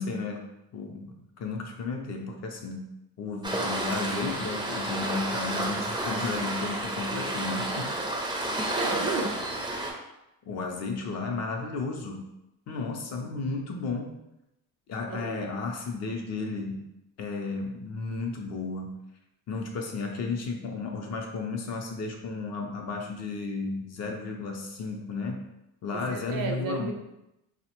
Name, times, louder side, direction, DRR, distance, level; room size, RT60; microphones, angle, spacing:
voice 1, 0.0-2.9 3.2-8.0 10.5-12.3 12.7-14.2 14.9-16.9 17.2-19.0 19.5-25.5 25.8-26.9, left 3 dB, 45° left, 2 dB, 0.5 m, -33 dB
Waves surf, 3.4-9.9, right 1 dB, 10° right, 0.4 m, -31 dB
voice 2, 8.8-9.4 15.1-15.5 25.9-26.9, right 4 dB, 60° right, 4 dB, 0.6 m, -33 dB
3.3 x 2.1 x 2.9 m, 0.88 s
cardioid pair, 125°, 39 cm